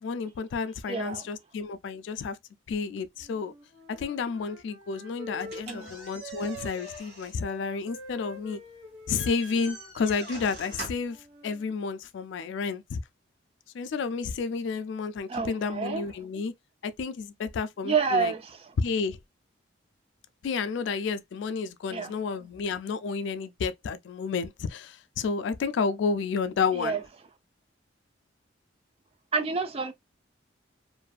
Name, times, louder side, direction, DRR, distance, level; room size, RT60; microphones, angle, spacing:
voice 1, 0.0-2.4 2.7-3.5 3.9-8.6 9.1-11.2 11.4-13.0 13.7-16.5 16.8-18.3 18.8-19.2 20.4-27.0, left 5 dB, 65° left, 0.3 m, -31 dB
voice 2, 0.9-1.3 5.7-5.9 15.3-16.1 17.8-18.6 21.9-22.1 26.8-27.0 29.3-29.9, right 5 dB, 30° right, 0.3 m, -28 dB
Wind instrument woodwind instrument, 3.2-7.1 7.4-11.7, equal, 75° right, 1.2 m, -46 dB
sound 1, 5.4-11.2, right 2 dB, 55° right, 1.3 m, -45 dB
2.5 x 2.4 x 2.2 m
head